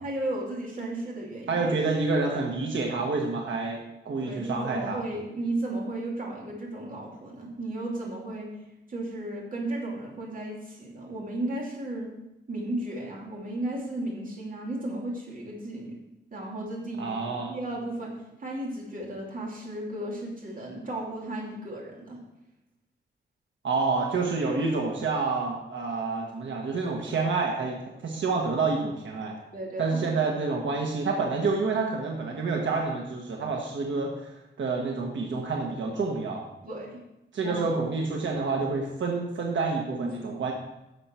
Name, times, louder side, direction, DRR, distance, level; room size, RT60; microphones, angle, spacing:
voice 1, 0.0-1.7 4.2-8.5 8.9-12.1 12.5-16.0 16.3-18.1 18.4-22.2 29.5-30.1 36.6-37.0 37.4-37.6 39.9-40.1, right 1 dB, 45° right, -3 dB, 2.6 m, -34 dB
voice 2, 1.5-3.8 4.0-5.0 17.0-17.5 23.6-29.3 29.8-36.4 37.3-40.5, right 4 dB, 85° right, 0 dB, 1.4 m, -28 dB
11.0 x 6.9 x 4.4 m, 0.91 s
wide cardioid pair, 160°, 19 cm